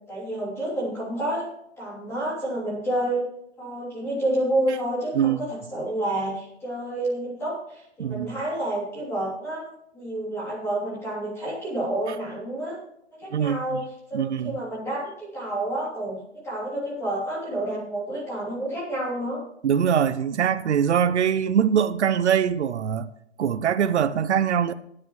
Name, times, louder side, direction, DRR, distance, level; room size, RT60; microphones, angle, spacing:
voice 1, 0.1-1.5 1.8-3.2 3.6-9.7 9.9-12.8 13.1-13.8 14.1-19.4, right 1 dB, 5° left, 3.1 m, -29 dB
voice 2, 14.1-14.6 19.6-23.1 23.4-24.7, right 8 dB, 75° right, 0.8 m, -22 dB
17.0 x 9.8 x 3.1 m
hypercardioid pair, 160°, 35 cm